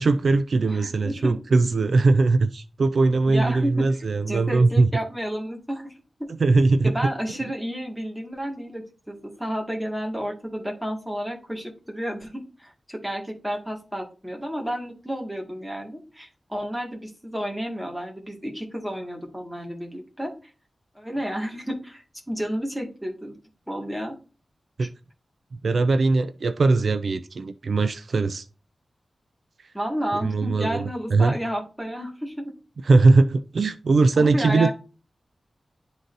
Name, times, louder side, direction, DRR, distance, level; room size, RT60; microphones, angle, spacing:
voice 1, 0.0-4.9 6.4-6.9 24.8-24.9 25.6-28.4 30.2-31.4 32.9-34.7, right 3 dB, 70° right, 0.4 m, -20 dB
voice 2, 0.7-1.3 3.3-3.9 4.3-5.9 6.2-6.3 6.8-20.3 21.0-23.3 23.7-24.2 24.8-24.9 29.7-32.5 34.2-34.7, equal, 5° right, 1.9 m, -31 dB
11.0 x 3.9 x 2.6 m
wide cardioid pair, 125°, 0 cm